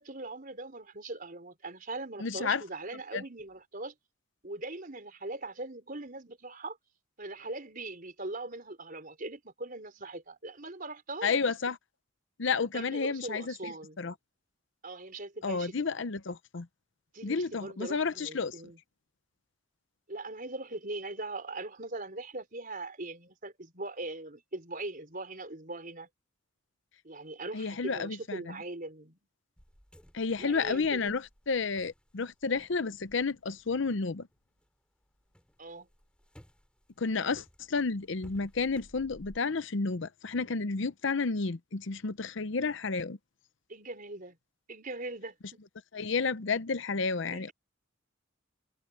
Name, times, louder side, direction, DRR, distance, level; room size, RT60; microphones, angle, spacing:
voice 1, 0.0-3.9 4.4-6.8 7.2-11.4 12.7-14.0 14.8-15.7 17.1-18.8 20.1-26.1 27.0-29.2 30.4-31.2 35.6-35.9 43.7-44.4 44.7-45.6 47.3-47.5, right 2 dB, 40° right, 4.5 m, -41 dB
voice 2, 2.2-2.6 3.1-3.2 11.2-11.8 12.4-14.1 15.4-16.7 17.2-18.6 27.5-28.5 30.1-34.3 37.0-43.2 45.9-47.5, left 4 dB, 60° left, 0.7 m, -31 dB
sound 1, 29.6-34.7 35.0-39.4, equal, 5° left, 7.6 m, -58 dB
head